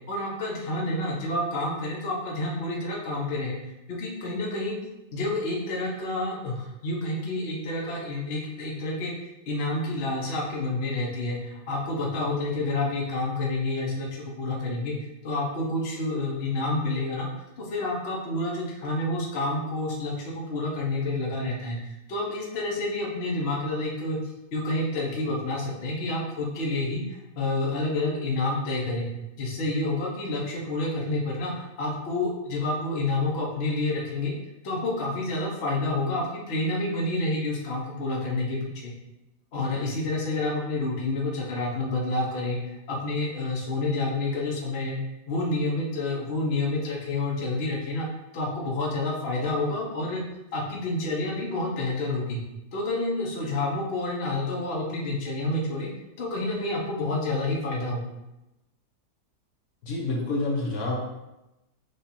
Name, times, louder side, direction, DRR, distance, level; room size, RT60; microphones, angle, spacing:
voice 1, 0.1-4.8 5.1-14.9 15.2-17.3 17.6-24.2 24.5-29.1 29.4-34.3 34.6-38.9 39.5-45.0 45.3-48.1 48.3-50.2 50.5-52.4 52.7-55.9 56.2-58.0, left 2 dB, 45° left, -3 dB, 0.9 m, -29 dB
voice 2, 59.8-61.0, left 2 dB, 65° left, -2 dB, 1.2 m, -28 dB
5.2 x 2.5 x 4.1 m, 0.96 s
omnidirectional pair, 1.7 m